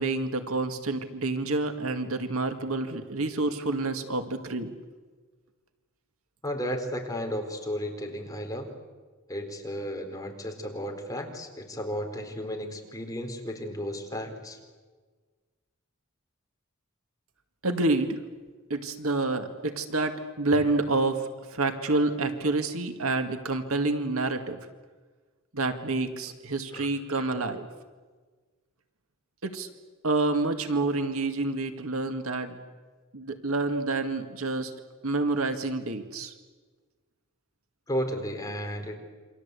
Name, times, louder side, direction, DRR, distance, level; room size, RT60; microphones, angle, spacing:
voice 1, 0.0-4.7 17.6-18.2 18.7-24.6 25.5-27.7 29.4-29.7 30.0-32.6 33.1-34.7 35.0-36.3, right 2 dB, 80° right, 7 dB, 2.1 m, -28 dB
voice 2, 6.4-8.7 9.3-14.6 26.7-26.9 27.1-27.2 37.9-39.0, equal, 15° left, 3 dB, 4.1 m, -34 dB
28.5 x 25.0 x 8.3 m, 1.4 s
head